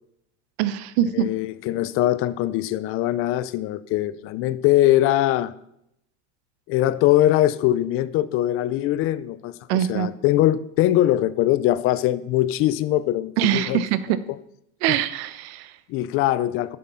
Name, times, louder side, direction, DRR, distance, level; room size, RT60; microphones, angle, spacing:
voice 1, 0.6-1.3 9.7-10.1 13.4-14.2 14.8-15.7, right 12 dB, 60° right, 1.0 m, -23 dB
voice 2, 1.1-5.5 6.7-13.8 14.9-15.0 15.9-16.8, left 14 dB, 35° left, 0.6 m, -22 dB
12.0 x 7.5 x 5.5 m
supercardioid pair, 140°, 37 cm